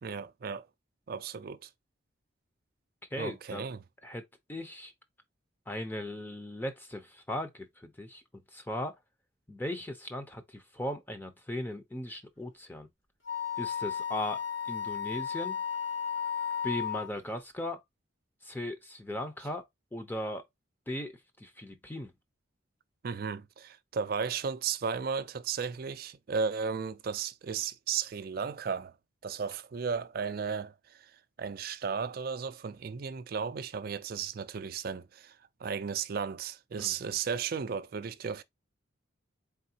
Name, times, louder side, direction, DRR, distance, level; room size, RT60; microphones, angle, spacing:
voice 1, 0.0-0.6 1.1-1.7 3.2-3.8 23.0-28.9 29.2-30.7 31.4-35.3 35.6-38.4, right 6 dB, 50° right, 0.4 m, -34 dB
voice 2, 3.1-3.7 4.0-4.2 4.5-4.9 5.7-8.2 8.5-8.9 9.5-12.9 13.6-15.6 16.6-17.8 18.4-19.6 19.9-20.4 20.9-22.1 36.8-36.9, left 1 dB, 10° left, 0.6 m, -38 dB
Wind instrument woodwind instrument, 13.3-17.1, left 8 dB, 85° left, 2.4 m, -34 dB
4.1 x 3.6 x 2.7 m
head